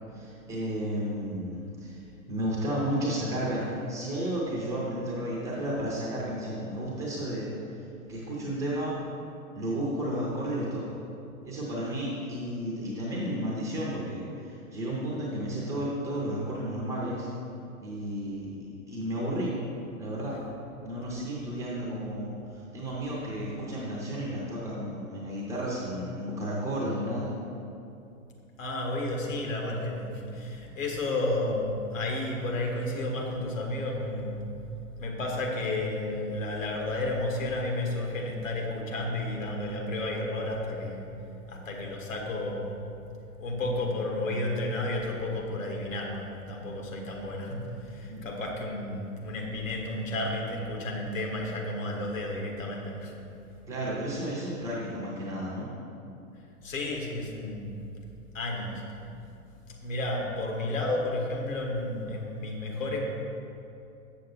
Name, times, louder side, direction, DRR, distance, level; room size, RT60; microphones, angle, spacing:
voice 1, 0.1-2.0 2.3-7.5 8.1-9.0 9.5-11.0 11.4-17.3 17.8-19.6 20.0-20.4 20.8-27.3 48.1-48.2 53.7-55.7, right 1 dB, 5° right, -6 dB, 0.5 m, -32 dB
voice 2, 28.6-34.5 35.0-41.1 41.5-42.9 43.4-53.1 56.6-57.8 58.3-58.8 59.7-63.0, left 2 dB, 60° left, 0 dB, 1.5 m, -32 dB
7.6 x 6.7 x 4.1 m, 2.7 s
figure-of-eight pair, 110°, 44 cm